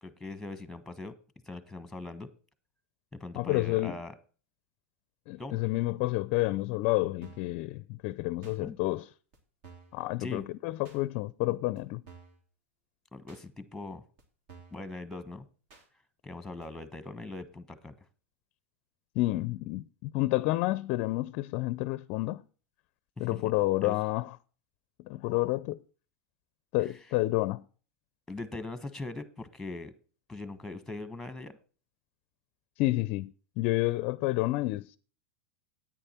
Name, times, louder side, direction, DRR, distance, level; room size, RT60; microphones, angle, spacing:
voice 1, 0.0-1.1 1.4-2.3 3.1-4.1 5.4-5.6 8.4-8.8 10.2-10.4 13.1-14.0 14.7-15.4 16.2-17.9 23.2-23.3 23.8-24.0 28.3-29.9 30.3-31.5, left 2 dB, 5° left, 1.1 m, -41 dB
voice 2, 3.4-4.0 5.3-9.1 9.9-12.0 19.2-22.4 23.2-24.4 25.0-25.8 26.7-27.6 32.8-35.0, left 19 dB, 50° left, 0.4 m, -29 dB
sound 1, 7.2-7.6 8.4-8.6 9.3-9.4 9.6-10.0 10.8-11.0 11.8-11.9 12.1-12.4 13.3-13.4 14.2-14.3 14.5-14.8 15.7-15.9 16.6-16.7, right 5 dB, 60° right, 2.7 m, -53 dB
9.9 x 9.0 x 4.3 m
hypercardioid pair, 105°, 7 cm